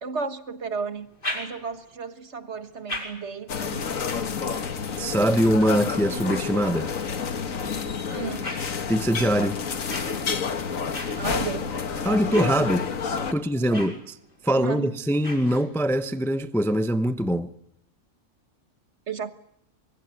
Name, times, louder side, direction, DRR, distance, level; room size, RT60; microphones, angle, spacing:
voice 1, 0.0-1.1 1.3-3.8 8.1-8.5 11.2-11.8 13.6-14.0 14.5-14.9 19.1-19.3, right 5 dB, 55° right, 1.7 m, -33 dB
sound 1, 1.0-2.0 2.6-7.2 7.8-16.0, left 1 dB, 40° left, 5.3 m, -41 dB
sound 2, 3.5-13.3, left 6 dB, 75° left, 1.9 m, -29 dB
voice 2, 4.9-6.9 8.9-9.6 12.0-12.9 13.3-14.1 14.4-17.5, right 1 dB, ahead, 0.7 m, -23 dB
25.0 x 23.0 x 9.2 m
omnidirectional pair, 1.4 m